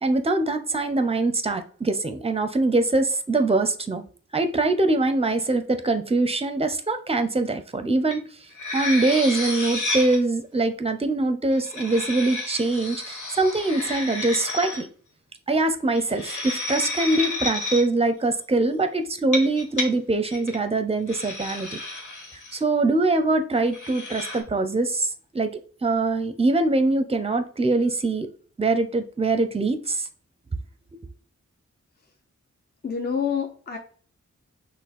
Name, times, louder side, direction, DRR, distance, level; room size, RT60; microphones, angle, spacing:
voice 1, 0.0-4.0 4.3-8.4 8.7-14.9 15.5-21.8 22.5-28.3 28.6-30.1, right 2 dB, 20° right, 0.6 m, -23 dB
sound 1, 8.1-8.2 8.5-10.2 11.5-14.8 15.9-17.8 19.2-19.9 20.3-20.6 21.1-22.6 23.6-24.4, left 2 dB, 85° left, 1.2 m, -31 dB
voice 2, 32.8-33.8, left 7 dB, 35° left, 0.7 m, -27 dB
6.0 x 2.1 x 4.1 m
wide cardioid pair, 85°, 29 cm